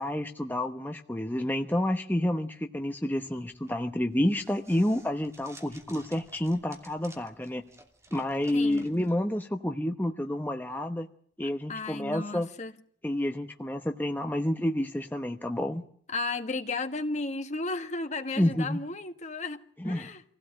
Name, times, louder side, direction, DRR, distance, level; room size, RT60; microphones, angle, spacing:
voice 1, 0.0-7.6 8.1-11.1 11.4-12.5 13.0-15.8 18.4-18.8 19.8-20.1, left 1 dB, 10° left, 1.0 m, -29 dB
sound 1, 3.4-9.1, right 2 dB, 15° right, 2.8 m, -54 dB
voice 2, 8.5-8.9 11.7-12.7 16.1-20.2, left 3 dB, 40° left, 1.6 m, -34 dB
26.5 x 16.5 x 8.9 m
head